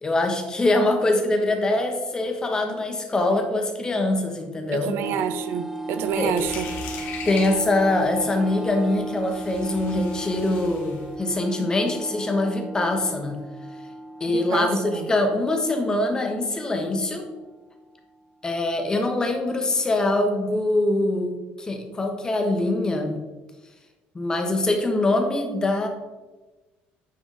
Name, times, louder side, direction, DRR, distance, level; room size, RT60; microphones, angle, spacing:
voice 1, 0.0-4.9 6.2-6.4 7.2-13.4 14.2-17.3 18.4-23.2 24.1-25.9, left 2 dB, 15° left, 4 dB, 1.2 m, -23 dB
voice 2, 4.7-6.7 11.6-11.7 14.3-15.1, right 9 dB, 70° right, 11 dB, 0.6 m, -28 dB
sound 1, 5.0-18.1, right 2 dB, 5° right, 0.5 m, -36 dB
sound 2, 6.0-11.1, left 5 dB, 70° left, 2.1 m, -39 dB
9.4 x 4.9 x 4.0 m, 1.2 s
cardioid pair, 145°, 4 cm